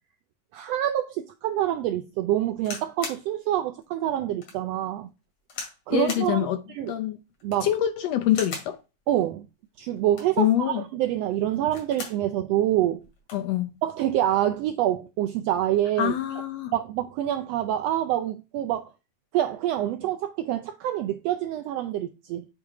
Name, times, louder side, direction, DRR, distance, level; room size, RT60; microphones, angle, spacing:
voice 1, 0.5-5.1 5.9-6.9 7.4-7.7 9.1-9.5 9.8-13.0 13.8-16.1 16.7-18.9 19.3-22.5, right 12 dB, 80° right, 1.4 m, -26 dB
sound 1, 2.6-3.3 3.8-3.9 4.4-4.6 5.5-5.8 6.1-6.3 7.3-7.7 8.3-8.8 10.0-10.4 11.5-12.2 12.6-12.7 13.0-13.5 14.3-14.6, left 4 dB, 60° left, 3.2 m, -38 dB
voice 2, 5.9-6.6 6.9-7.2 7.6-8.8 10.4-10.8 13.3-13.7 16.0-16.7, left 11 dB, 75° left, 1.6 m, -25 dB
8.0 x 3.6 x 4.7 m
omnidirectional pair, 3.3 m